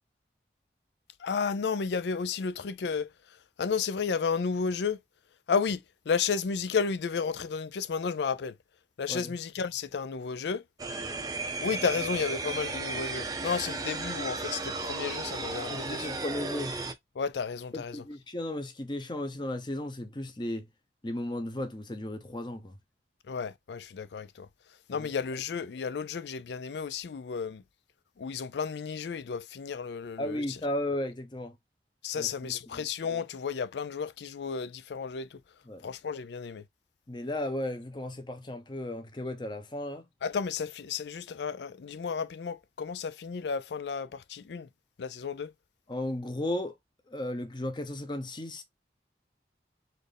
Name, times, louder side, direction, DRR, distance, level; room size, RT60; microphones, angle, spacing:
voice 1, 1.2-3.1 3.6-5.0 5.5-8.6 9.0-10.6 11.6-16.1 17.2-18.0 23.3-24.5 24.9-27.6 28.2-30.6 32.0-35.4 35.8-36.6 40.2-44.7 45.0-45.5, left 5 dB, 75° left, 0.4 m, -32 dB
sound 1, 10.8-16.9, right 3 dB, 20° right, 0.5 m, -34 dB
voice 2, 15.7-16.7 17.7-20.6 21.0-22.8 24.9-25.1 30.2-31.5 32.1-32.8 35.7-35.8 37.1-40.1 45.9-46.7 47.1-48.6, left 1 dB, 25° left, 0.7 m, -35 dB
4.3 x 2.5 x 3.3 m
head